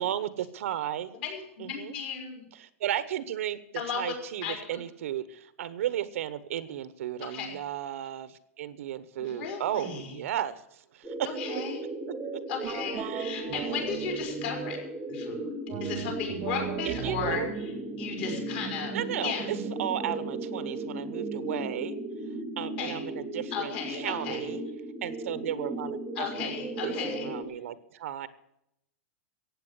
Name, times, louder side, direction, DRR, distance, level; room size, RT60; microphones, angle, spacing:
voice 1, 0.0-1.1 1.6-2.0 2.6-3.6 3.9-11.4 12.1-12.4 13.0-13.2 16.8-17.5 18.9-22.0 22.6-24.6 25.0-26.5 26.8-28.3, right 11 dB, 65° right, 14 dB, 1.1 m, -34 dB
voice 2, 1.2-2.4 3.7-4.1 4.4-4.6 7.3-7.5 9.2-10.2 11.4-11.8 12.5-14.8 15.1-15.5 15.8-17.7 18.0-18.9 19.2-19.5 22.8-23.0 23.5-24.5 26.1-27.3, left 6 dB, 45° left, 2 dB, 4.9 m, -35 dB
sound 1, 11.0-27.4, right 2 dB, 10° right, 1.4 m, -36 dB
sound 2, 12.6-14.9 15.7-19.0, right 11 dB, 30° right, 0.8 m, -39 dB
15.0 x 8.7 x 8.1 m, 0.80 s
supercardioid pair, 170°, 8 cm